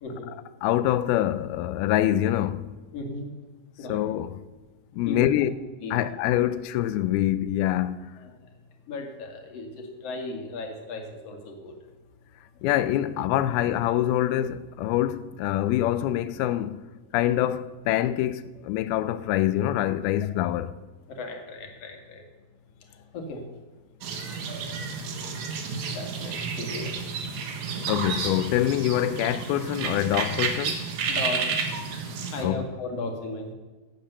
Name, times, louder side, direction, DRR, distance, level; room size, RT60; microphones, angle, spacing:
voice 1, 0.0-0.3 2.9-3.3 3.8-4.0 5.1-5.4 5.8-6.0 8.2-8.3 8.9-11.7 21.2-22.2 23.1-23.4 25.9-26.9 31.1-31.5 32.3-33.5, left 2 dB, 45° left, 2.7 m, -35 dB
voice 2, 0.6-2.7 3.9-4.3 4.9-5.5 5.9-8.0 12.6-16.8 17.1-20.7 25.9-26.0 27.9-30.8 32.4-32.6, left 13 dB, 85° left, 2.5 m, -25 dB
sound 1, 24.0-32.4, right 5 dB, 60° right, 2.4 m, -31 dB
16.0 x 8.5 x 6.7 m
omnidirectional pair, 4.3 m